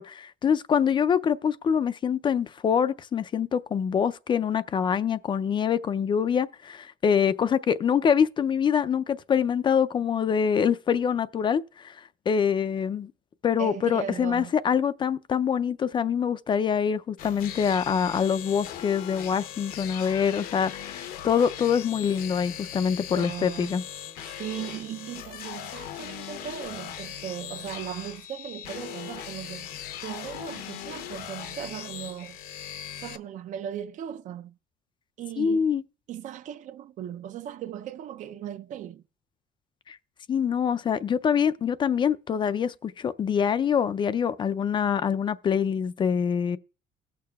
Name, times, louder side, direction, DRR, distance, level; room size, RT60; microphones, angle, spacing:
voice 1, 0.0-12.0 12.3-13.1 13.4-23.8 35.4-35.8 39.9-40.0 40.3-46.6, left 7 dB, 30° left, 0.4 m, -25 dB
voice 2, 13.6-14.5 22.9-23.8 24.2-32.4 33.0-34.6 35.2-35.8 36.1-39.0, right 10 dB, 55° right, 0.5 m, -38 dB
sound 1, 17.2-33.2, left 10 dB, 70° left, 0.8 m, -39 dB
18.0 x 6.7 x 2.3 m
cardioid pair, 125°, 16 cm